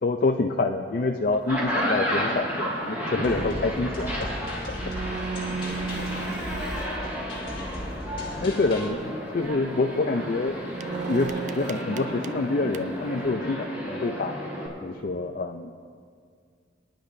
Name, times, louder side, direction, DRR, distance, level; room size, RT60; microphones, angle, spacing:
voice 1, 0.0-4.3 8.4-10.6 11.0-14.4 14.8-15.7, left 3 dB, 50° left, 3 dB, 0.5 m, -27 dB
sound 1, 1.3-14.7, equal, 10° right, 3.6 m, -32 dB
sound 2, 1.3-1.6 2.1-2.4 4.3-4.4 4.5-7.9 8.8-9.1 9.4-9.7 10.1-13.3, right 5 dB, 40° right, 0.3 m, -36 dB
voice 2, 1.7-2.0 5.2-7.0, left 1 dB, 70° left, 1 dB, 1.8 m, -40 dB
sound 3, 3.2-8.9, left 1 dB, 30° left, 2.5 m, -38 dB
24.0 x 10.5 x 2.7 m, 2.1 s
head